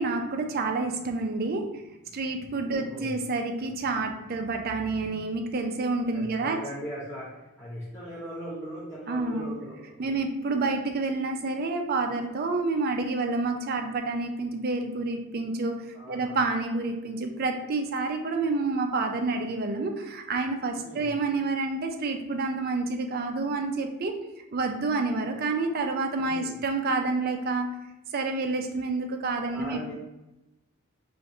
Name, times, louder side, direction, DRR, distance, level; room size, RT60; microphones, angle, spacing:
voice 1, 0.0-1.7 2.1-6.6 9.1-9.5 10.0-15.8 16.1-24.1 24.5-27.7 28.1-29.8, right 3 dB, 45° right, 4 dB, 0.4 m, -28 dB
voice 2, 2.6-3.2 6.1-10.2 13.6-13.7 15.9-16.4 20.8-21.1 26.2-26.6 29.5-29.9, equal, 10° left, -8 dB, 0.5 m, -40 dB
2.5 x 2.4 x 4.1 m, 0.99 s
head